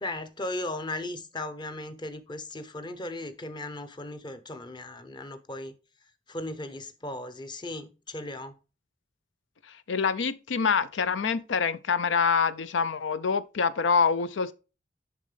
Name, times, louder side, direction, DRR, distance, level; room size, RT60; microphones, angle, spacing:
voice 1, 0.0-5.7 6.3-8.6, left 2 dB, 25° left, 0.8 m, -37 dB
voice 2, 9.7-14.5, left 5 dB, 85° left, 0.5 m, -26 dB
10.5 x 3.7 x 3.3 m
head